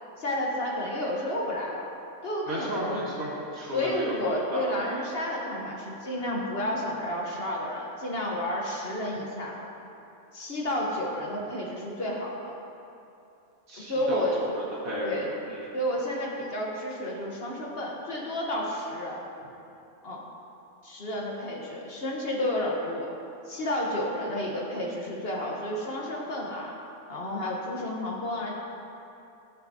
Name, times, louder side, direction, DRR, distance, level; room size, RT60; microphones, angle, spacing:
voice 1, 0.2-1.9 2.2-2.9 3.7-9.6 10.3-12.5 13.8-14.4 15.0-15.3 15.7-19.2 20.0-20.2 20.8-23.1 23.5-26.7 27.1-28.5, left 1 dB, 50° left, -2 dB, 1.1 m, -31 dB
voice 2, 2.5-4.7 13.7-15.1 15.5-15.6, equal, 75° right, -7 dB, 2.3 m, -33 dB
13.5 x 5.8 x 2.7 m, 2.8 s
omnidirectional pair, 1.4 m